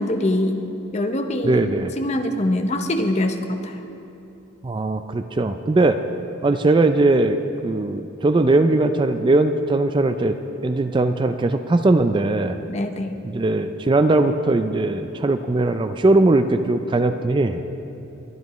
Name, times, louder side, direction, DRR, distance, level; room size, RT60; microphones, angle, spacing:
voice 1, 0.0-3.8 12.7-13.1, left 1 dB, 35° left, 6 dB, 0.7 m, -24 dB
voice 2, 1.4-1.9 4.6-6.0 6.4-7.4 7.6-10.4 10.6-12.6 13.3-17.6, right 2 dB, 25° right, 9 dB, 0.3 m, -19 dB
22.0 x 10.5 x 3.1 m, 2.9 s
head